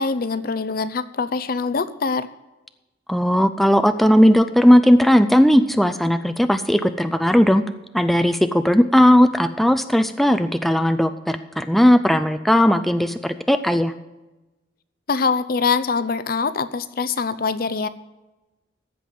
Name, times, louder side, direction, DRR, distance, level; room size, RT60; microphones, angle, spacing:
voice 1, 0.0-2.3 15.1-17.9, left 4 dB, 55° left, 13 dB, 0.6 m, -23 dB
voice 2, 3.1-7.6 7.9-13.9, equal, ahead, 9 dB, 0.4 m, -17 dB
15.0 x 5.5 x 7.7 m, 1.1 s
head